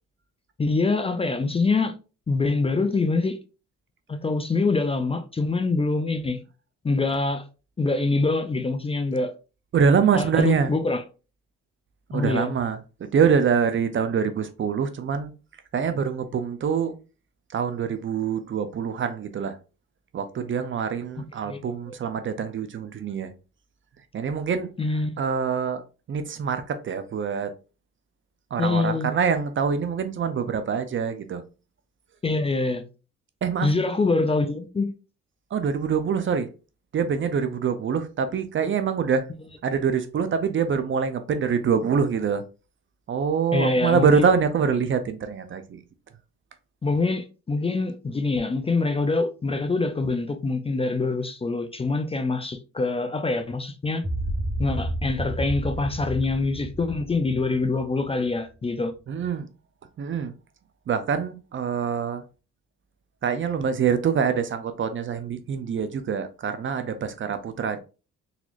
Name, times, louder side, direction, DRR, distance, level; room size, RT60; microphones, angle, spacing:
voice 1, 0.6-2.0 2.3-3.4 4.1-6.4 6.8-7.5 7.8-9.3 10.1-11.0 12.1-12.5 21.4-21.6 21.9-22.0 24.8-25.1 28.6-29.1 32.2-32.8 33.6-34.9 43.5-44.2 46.8-54.0 54.6-58.9, left 3 dB, 20° left, 0.4 m, -25 dB
voice 2, 9.7-10.7 12.1-12.8 13.1-15.3 15.7-17.0 17.5-19.6 20.1-23.3 24.1-24.7 25.2-25.8 26.1-27.5 28.5-31.4 33.4-33.7 35.5-36.5 36.9-39.2 39.6-42.4 43.1-45.6 59.1-59.5 60.0-60.3 60.9-62.2 63.2-67.8, right 6 dB, 40° right, 0.5 m, -25 dB
sound 1, 54.0-58.4, right 1 dB, 5° left, 1.6 m, -31 dB
4.0 x 2.9 x 2.4 m
cardioid pair, 90°, 30 cm